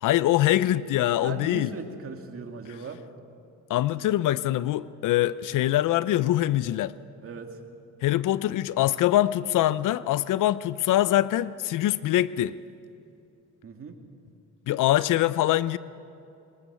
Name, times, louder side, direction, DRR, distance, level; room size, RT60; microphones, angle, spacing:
voice 1, 0.0-1.7 3.7-6.9 8.0-12.6 14.7-15.8, left 14 dB, 80° left, 17 dB, 0.6 m, -23 dB
voice 2, 1.2-3.0 7.2-7.6 13.6-14.0, right 4 dB, 45° right, 4 dB, 2.4 m, -38 dB
22.0 x 20.0 x 6.9 m, 2.6 s
cardioid pair, 85°, 31 cm